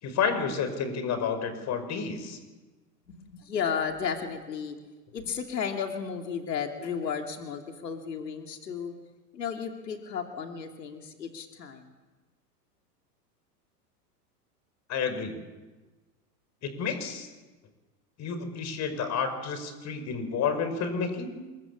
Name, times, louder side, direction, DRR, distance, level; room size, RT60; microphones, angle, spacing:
voice 1, 0.0-2.4 14.9-15.4 16.6-17.3 18.2-21.4, left 6 dB, 35° left, 9 dB, 5.6 m, -30 dB
voice 2, 3.1-4.8 5.1-8.9 9.3-11.9, left 7 dB, 90° left, 4 dB, 2.8 m, -33 dB
27.5 x 23.5 x 8.4 m, 1.2 s
hypercardioid pair, 110°, 48 cm